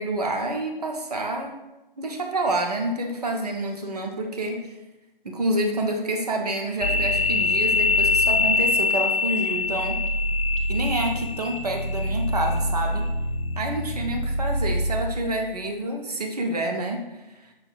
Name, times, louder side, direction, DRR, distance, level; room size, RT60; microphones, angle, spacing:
voice 1, 0.0-1.6 2.0-4.7 5.2-10.0 10.7-13.1 13.6-17.0, right 1 dB, 45° right, 2 dB, 0.6 m, -28 dB
sound 1, 6.8-15.4, left 2 dB, 35° left, 0.6 m, -24 dB
6.2 x 2.6 x 2.3 m, 1.0 s
figure-of-eight pair, 155°, 29 cm